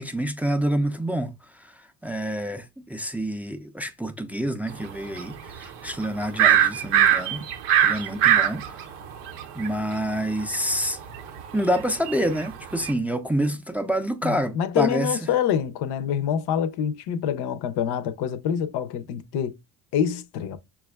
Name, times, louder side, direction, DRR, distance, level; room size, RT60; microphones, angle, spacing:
voice 1, 0.0-1.3 1.6-1.7 2.0-7.5 7.8-8.8 9.5-11.0 11.5-15.2, equal, 5° right, 0.4 m, -27 dB
sound 1, 5.2-5.7 6.0-9.7 10.1-12.9, right 10 dB, 85° right, 0.6 m, -21 dB
voice 2, 14.2-19.5 19.9-20.6, left 8 dB, 65° left, 0.6 m, -26 dB
5.8 x 2.3 x 2.2 m
supercardioid pair, 60°, 44 cm